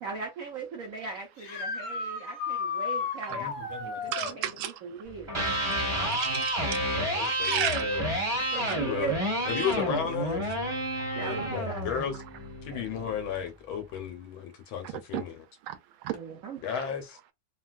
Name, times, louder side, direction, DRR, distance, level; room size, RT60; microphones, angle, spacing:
voice 1, 0.0-3.5 4.0-5.4 8.5-9.2 9.5-9.8 11.2-11.8 12.7-12.8 16.1-16.6, right 5 dB, 65° right, 0.8 m, -39 dB
sound 1, 1.4-4.4 7.7-7.8 9.8-9.9 16.1-16.2, left 5 dB, 55° left, 1.5 m, -33 dB
voice 2, 3.4-4.1 7.2-8.0 8.7-9.1 9.5-10.6 11.2-12.1 12.6-15.3 16.6-17.2, left 8 dB, 80° left, 1.6 m, -34 dB
voice 3, 4.1-5.0 5.7-5.8 6.0-6.6 7.3-7.9 8.6-8.8 11.9-12.2 14.8-15.2 15.6-16.2, right 11 dB, 85° right, 1.5 m, -34 dB
Electric guitar, 5.2-13.3, right 1 dB, 20° right, 1.0 m, -30 dB
3.7 x 2.3 x 2.3 m
omnidirectional pair, 2.2 m